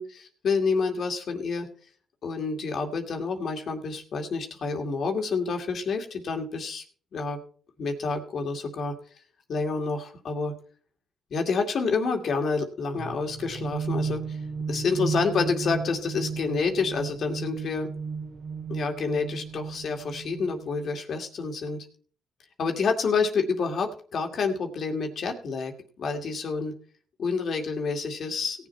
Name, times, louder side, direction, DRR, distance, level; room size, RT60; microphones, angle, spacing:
voice 1, 0.0-1.7 2.2-6.8 7.1-7.4 7.8-8.9 9.5-10.5 11.3-14.4 14.7-17.9 18.7-21.9 22.6-26.7 27.2-28.7, left 4 dB, 60° left, 4 dB, 2.3 m, -28 dB
sound 1, 13.0-20.7, right 5 dB, 55° right, 2.2 m, -34 dB
17.5 x 7.3 x 4.4 m, 0.43 s
cardioid pair, 85°, 0 cm